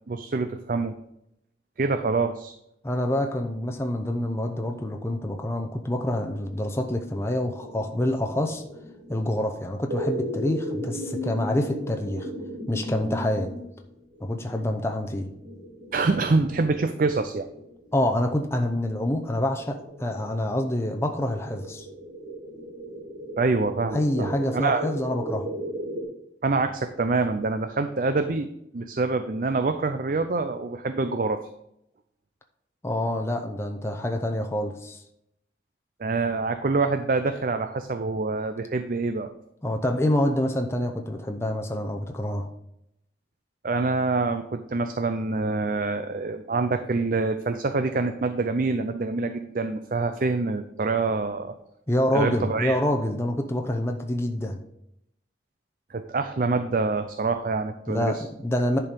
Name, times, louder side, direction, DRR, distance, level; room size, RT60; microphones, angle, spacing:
voice 1, 0.1-0.9 1.8-2.5 15.9-17.5 23.4-24.8 26.4-31.4 36.0-39.3 43.6-51.6 52.1-52.8 55.9-58.2, right 3 dB, 50° right, 8 dB, 0.5 m, -26 dB
voice 2, 2.8-8.6 9.1-12.3 12.7-13.5 14.2-15.3 17.9-21.9 23.9-25.5 32.8-35.0 39.6-42.5 51.9-54.6 57.9-58.8, left 1 dB, 15° left, 3 dB, 0.7 m, -27 dB
sound 1, 6.3-26.0, equal, 80° right, 3.0 m, -37 dB
10.5 x 4.6 x 5.2 m, 0.79 s
head